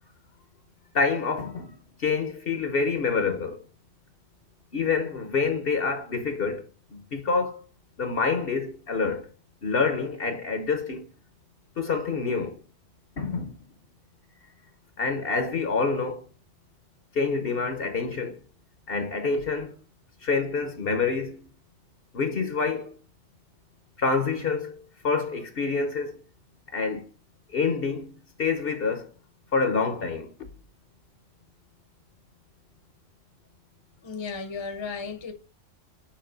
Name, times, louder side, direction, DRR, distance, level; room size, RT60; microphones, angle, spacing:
voice 1, 0.9-3.6 4.7-6.7 6.9-7.6 8.0-9.3 9.6-11.1 11.8-12.6 13.2-13.5 15.0-16.2 17.1-18.4 18.9-19.7 20.2-21.5 22.1-23.0 24.0-26.2 26.7-27.1 27.5-28.1 28.4-29.1 29.5-30.3, left 4 dB, 55° left, 1.1 m, -27 dB
voice 2, 34.0-35.3, left 5 dB, 25° left, 0.9 m, -34 dB
8.7 x 3.2 x 5.0 m
omnidirectional pair, 1.2 m